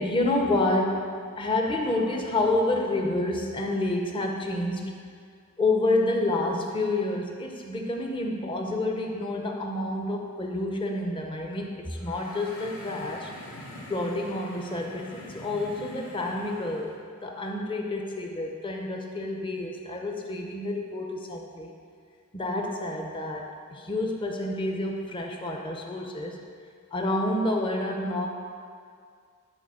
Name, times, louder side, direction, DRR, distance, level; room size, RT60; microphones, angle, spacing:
voice 1, 0.0-4.9 5.6-13.3 13.9-21.7 22.3-26.4 26.9-28.3, left 2 dB, 20° left, 1 dB, 0.8 m, -29 dB
sound 1, 11.9-17.0, left 1 dB, 60° left, 1.6 m, -44 dB
11.0 x 4.2 x 6.3 m, 2.2 s
head